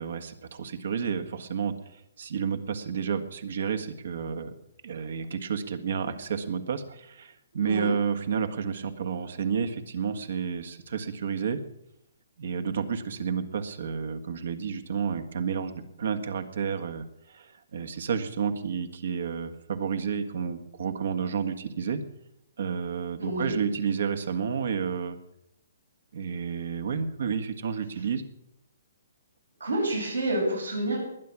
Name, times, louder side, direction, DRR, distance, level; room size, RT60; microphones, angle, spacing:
voice 1, 0.0-4.5 4.8-11.6 12.4-22.0 22.6-25.2 26.1-28.2, right 6 dB, 65° right, 8 dB, 1.7 m, -31 dB
voice 2, 7.6-7.9 23.2-23.5 29.6-31.0, right 1 dB, 90° right, -6 dB, 6.9 m, -28 dB
20.5 x 9.7 x 6.1 m, 0.80 s
figure-of-eight pair, 130°, 0 cm